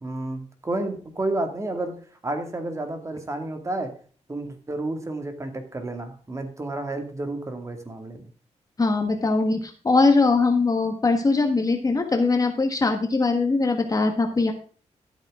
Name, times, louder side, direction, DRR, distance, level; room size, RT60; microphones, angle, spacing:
voice 1, 0.0-2.0 2.2-3.9 4.3-8.2, right 2 dB, 25° right, 5 dB, 2.3 m, -31 dB
voice 2, 8.8-14.5, left 3 dB, 30° left, 4 dB, 1.5 m, -21 dB
13.0 x 8.1 x 3.7 m, 0.41 s
wide cardioid pair, 110°, 12 cm